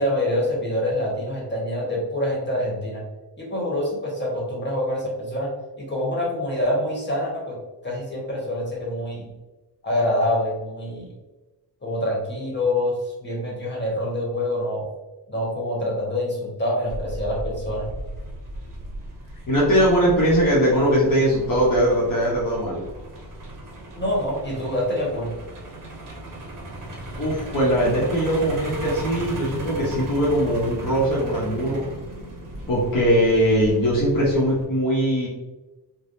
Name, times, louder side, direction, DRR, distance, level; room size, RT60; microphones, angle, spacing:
voice 1, 0.0-3.0 3.4-5.5 5.8-7.6 7.8-9.3 9.8-11.1 11.8-14.9 15.3-17.9 24.0-25.3, left 1 dB, 25° left, -3 dB, 1.3 m, -26 dB
Truck, 16.9-34.6, right 1 dB, 45° right, 0.8 m, -36 dB
voice 2, 19.5-22.8 27.2-31.8 32.7-35.3, equal, 50° left, -5 dB, 0.9 m, -20 dB
3.4 x 2.2 x 2.7 m, 1.1 s
cardioid pair, 85°, 43 cm